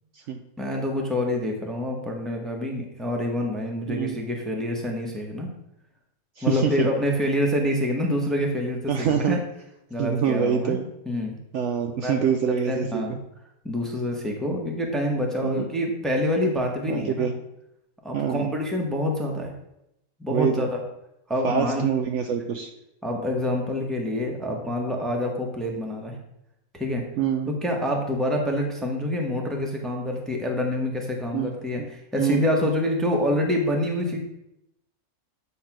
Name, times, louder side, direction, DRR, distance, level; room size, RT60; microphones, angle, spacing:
voice 1, 0.6-5.5 6.4-9.4 9.9-10.8 11.0-11.4 12.0-12.1 12.5-13.2 13.6-17.3 18.0-19.5 20.2-20.8 21.3-21.9 23.0-26.2 26.7-27.1 27.5-34.2, left 1 dB, ahead, 1 dB, 0.9 m, -26 dB
voice 2, 6.4-6.9 8.9-9.4 10.0-10.9 11.5-13.2 15.4-15.7 16.9-17.3 18.1-18.5 20.3-20.7 21.4-22.7 27.2-27.5 31.3-31.5 32.2-32.4, right 8 dB, 65° right, 5 dB, 0.8 m, -25 dB
8.2 x 3.2 x 5.9 m, 0.85 s
omnidirectional pair, 1.5 m